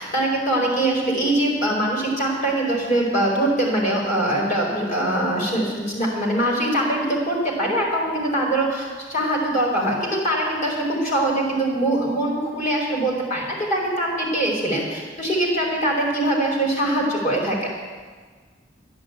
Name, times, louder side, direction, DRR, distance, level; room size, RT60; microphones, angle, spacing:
voice 1, 0.0-17.7, right 1 dB, 45° left, -2 dB, 4.7 m, -23 dB
12.0 x 10.5 x 8.5 m, 1.5 s
head